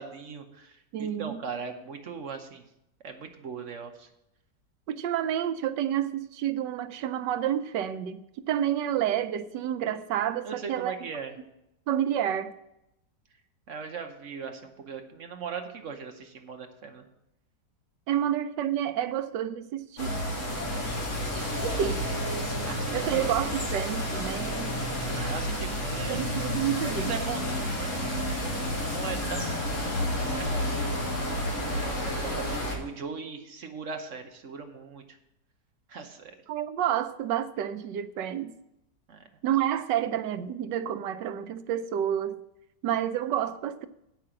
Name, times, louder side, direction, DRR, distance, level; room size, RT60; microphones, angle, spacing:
voice 1, 0.0-2.6 3.0-4.1 10.4-11.3 13.7-17.0 21.5-22.1 22.6-23.2 25.2-26.3 26.8-30.0 30.3-30.9 31.7-35.0 35.9-36.3 39.1-39.2, right 6 dB, 50° right, 1.1 m, -39 dB
voice 2, 0.9-1.4 4.9-8.2 8.5-10.9 11.9-12.5 18.1-20.1 21.6-22.0 22.9-24.7 26.1-27.1 36.5-38.5 39.4-42.4 42.8-43.9, right 10 dB, 90° right, 1.3 m, -29 dB
sound 1, 20.0-32.7, left 1 dB, 45° left, 2.6 m, -30 dB
8.5 x 5.8 x 7.6 m
omnidirectional pair, 1.8 m